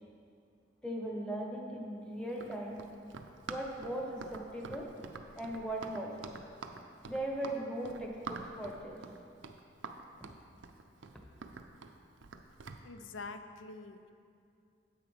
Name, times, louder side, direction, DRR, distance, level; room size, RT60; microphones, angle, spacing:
voice 1, 0.8-2.8 3.5-4.9 5.4-6.3 7.0-9.0, right 1 dB, 5° left, -2 dB, 1.0 m, -38 dB
Run, 2.3-12.8, right 4 dB, 80° right, 0.5 m, -46 dB
voice 2, 12.8-14.1, left 3 dB, 80° left, 9 dB, 0.5 m, -45 dB
9.9 x 8.1 x 3.3 m, 2.4 s
head